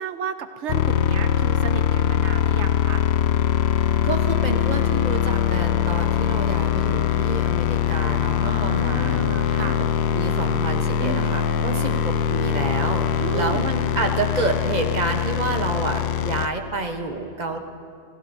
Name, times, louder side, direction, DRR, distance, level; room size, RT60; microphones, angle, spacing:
voice 1, 0.0-3.0 8.4-9.8 11.0-12.0 13.2-13.7, right 6 dB, 85° right, 10 dB, 1.0 m, -33 dB
sound 1, 0.7-16.5, left 9 dB, 75° left, 0.8 m, -22 dB
voice 2, 4.0-9.9 10.1-17.6, right 3 dB, 40° right, 4 dB, 1.1 m, -29 dB
28.5 x 15.0 x 2.7 m, 2.2 s
omnidirectional pair, 1.2 m